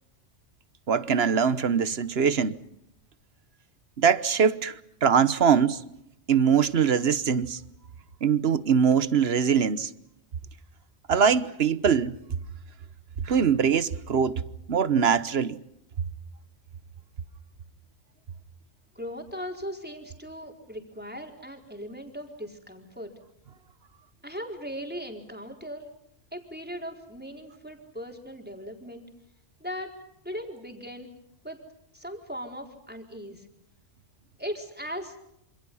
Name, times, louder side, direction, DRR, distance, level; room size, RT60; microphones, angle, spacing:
voice 1, 0.9-2.5 4.0-5.8 6.3-7.6 8.2-9.9 11.1-12.2 13.2-14.4 14.7-15.6, right 7 dB, 55° right, 1.3 m, -22 dB
voice 2, 19.0-23.1 24.2-25.8 26.3-29.1 29.6-29.9 30.2-31.1 31.4-31.6 31.9-33.5 34.4-35.2, equal, 10° right, 4.5 m, -38 dB
27.5 x 27.0 x 5.6 m
omnidirectional pair, 1.3 m